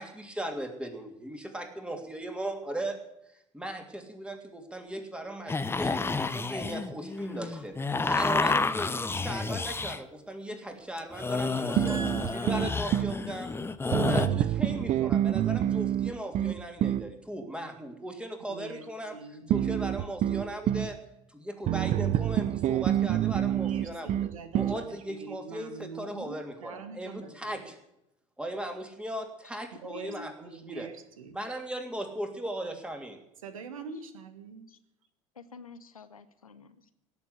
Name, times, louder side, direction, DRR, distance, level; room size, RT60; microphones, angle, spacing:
voice 1, 0.0-3.0 3.5-6.0 6.3-7.8 8.0-12.0 12.3-13.5 13.8-19.1 19.5-21.0 21.3-24.2 24.5-27.7 28.4-30.9 31.3-33.2, right 1 dB, 5° right, 5 dB, 3.1 m, -37 dB
sound 1, 5.5-10.0 11.0-14.3, left 3 dB, 15° left, 0.9 m, -30 dB
voice 2, 11.6-13.1 18.5-18.9 19.1-20.1 23.5-27.7 29.8-31.4 33.4-34.7, right 5 dB, 75° right, 9 dB, 1.7 m, -45 dB
sound 2, 11.8-13.2 13.9-17.1 19.5-20.9 21.7-24.8, right 11 dB, 40° right, 0.7 m, -27 dB
voice 3, 29.9-30.3 34.7-34.8 35.3-36.9, left 5 dB, 85° left, 11 dB, 1.0 m, -48 dB
17.5 x 7.2 x 9.8 m, 0.82 s
figure-of-eight pair, 65°, 18 cm